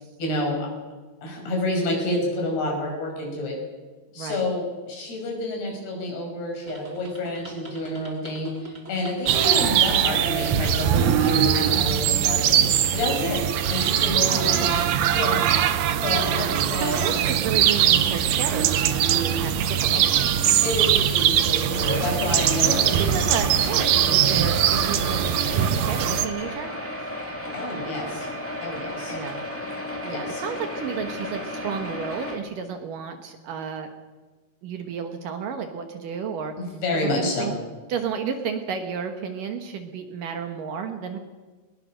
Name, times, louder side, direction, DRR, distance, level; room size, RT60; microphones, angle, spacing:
voice 1, 0.2-0.7 1.2-3.6 4.1-12.7 12.9-14.9 15.1-15.5 16.0-17.2 20.6-22.9 27.5-28.3 28.6-29.2 30.1-30.4 36.6-37.5, left 1 dB, 70° left, 0 dB, 7.9 m, -29 dB
sound 1, 6.7-20.7, right 3 dB, 30° right, 1.6 m, -44 dB
sound 2, 9.3-26.3, right 10 dB, 80° right, 1.7 m, -21 dB
voice 2, 14.3-14.8 16.8-20.3 22.6-26.7 29.1-29.4 30.0-33.9 34.6-36.5 36.9-37.5 37.9-41.2, right 6 dB, 65° right, 6 dB, 2.6 m, -32 dB
sound 3, 21.6-32.4, left 1 dB, 5° left, 1.3 m, -33 dB
21.5 x 20.5 x 6.4 m, 1.3 s
omnidirectional pair, 4.7 m